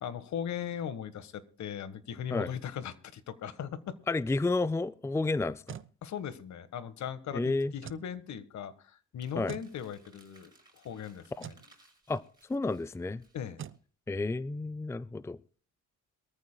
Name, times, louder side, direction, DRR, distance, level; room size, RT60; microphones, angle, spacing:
voice 1, 0.0-3.9 6.0-11.5 13.3-13.6, left 8 dB, 65° left, 1.5 m, -39 dB
voice 2, 4.1-5.8 7.3-7.7 9.4-9.5 11.4-11.5 12.1-12.2 12.5-13.2 14.1-15.4, left 3 dB, 10° left, 0.5 m, -31 dB
sound 1, 5.4-5.9 7.8-8.1 9.5-9.7 11.4-11.7 13.6-13.8, right 9 dB, 45° right, 0.7 m, -43 dB
Crumpling crinkling, 9.2-13.8, right 2 dB, 15° right, 6.2 m, -64 dB
23.0 x 14.0 x 2.2 m
cardioid pair, 90°, 30 cm